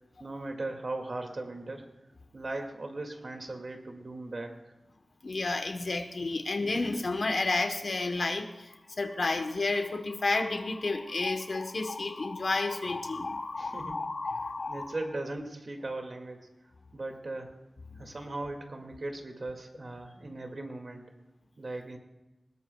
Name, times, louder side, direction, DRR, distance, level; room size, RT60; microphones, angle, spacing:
voice 1, 0.2-1.9 2.3-4.7 13.6-13.9 14.7-16.5 16.9-17.5 18.0-21.0 21.6-22.0, right 2 dB, 55° right, 3 dB, 2.1 m, -38 dB
voice 2, 5.2-15.0 17.9-18.1, left 3 dB, 65° left, 7 dB, 1.0 m, -31 dB
20.0 x 17.5 x 2.3 m, 1.0 s
wide cardioid pair, 70°, 0 cm